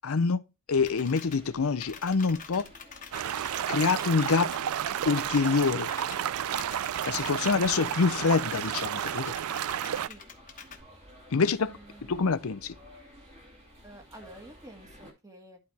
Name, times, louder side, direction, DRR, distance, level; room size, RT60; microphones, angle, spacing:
voice 1, 0.0-0.4 0.7-2.7 3.4-4.5 5.1-5.9 7.1-9.3 11.3-11.8 12.1-12.7, left 4 dB, 75° left, 0.6 m, -26 dB
sound 1, 0.7-15.1, equal, 30° right, 2.3 m, -53 dB
sound 2, 0.8-1.4 1.8-8.7 9.0-10.8, left 6 dB, 35° left, 1.2 m, -46 dB
sound 3, 3.1-10.1, right 10 dB, 80° right, 0.4 m, -32 dB
voice 2, 11.4-12.2 13.8-15.6, right 1 dB, 15° right, 1.7 m, -50 dB
11.5 x 4.4 x 3.4 m
head